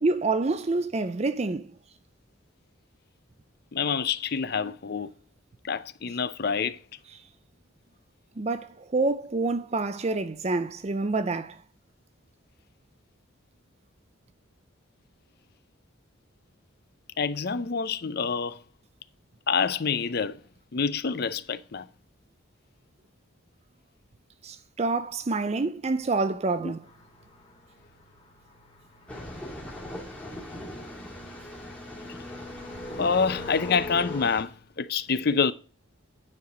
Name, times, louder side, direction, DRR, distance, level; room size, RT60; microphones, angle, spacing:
voice 1, 0.0-1.7 8.4-11.6 24.4-26.8, right 3 dB, 30° right, 0.5 m, -27 dB
voice 2, 3.7-5.1 5.6-6.8 17.2-18.6 19.5-20.4 20.7-21.9 26.6-26.7 33.0-35.5, left 5 dB, 55° left, 0.6 m, -27 dB
sound 1, 26.8-34.3, left 2 dB, 30° left, 2.6 m, -42 dB
sound 2, 29.1-34.4, left 1 dB, 5° left, 2.8 m, -41 dB
9.7 x 4.9 x 5.0 m
head